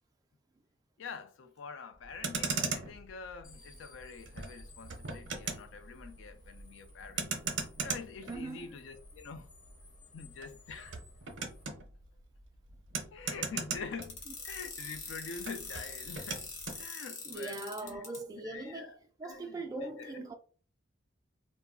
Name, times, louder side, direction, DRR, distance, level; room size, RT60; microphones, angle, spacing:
voice 1, 1.0-7.4 7.8-9.5 10.1-11.1 13.1-16.5 16.8-18.0 18.3-20.3, left 5 dB, 70° left, 0.4 m, -46 dB
Motor vehicle (road), 2.0-14.7 14.9-16.8, right 4 dB, 60° right, 0.6 m, -39 dB
sound 1, 3.4-11.6, left 3 dB, 40° left, 0.8 m, -60 dB
voice 2, 8.3-8.8 17.2-20.4, right 2 dB, 20° right, 0.3 m, -41 dB
sound 2, 14.0-18.2, left 5 dB, 85° left, 1.0 m, -43 dB
2.3 x 2.1 x 3.5 m
head